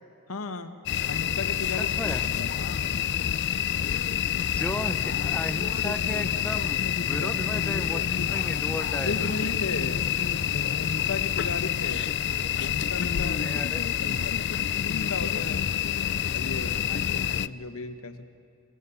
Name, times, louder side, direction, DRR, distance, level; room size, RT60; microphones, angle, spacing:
voice 1, 0.3-0.8 1.1-2.0 2.4-3.0 7.1-7.3 9.0-10.0 10.5-12.1 12.6-14.5 14.9-15.7 16.3-18.2, left 3 dB, 80° left, 8 dB, 1.3 m, -35 dB
sound 1, 0.9-17.5, left 9 dB, 50° left, 0.4 m, -27 dB
voice 2, 1.8-2.2 4.5-9.2 13.2-13.8, left 1 dB, 5° left, 5 dB, 0.8 m, -35 dB
26.5 x 18.5 x 7.1 m, 2.6 s
head